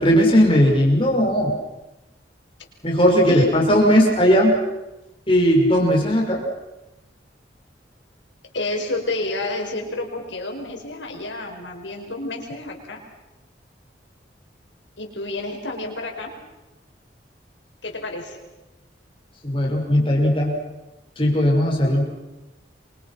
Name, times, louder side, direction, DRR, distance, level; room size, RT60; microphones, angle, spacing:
voice 1, 0.0-1.6 2.8-4.6 5.3-6.4 19.4-20.6 21.2-22.1, equal, 30° left, 0 dB, 6.2 m, -17 dB
voice 2, 3.3-3.7 8.5-13.0 15.0-16.3 17.8-18.4, left 2 dB, 90° left, 2 dB, 5.8 m, -30 dB
28.5 x 25.0 x 6.0 m, 1.0 s
head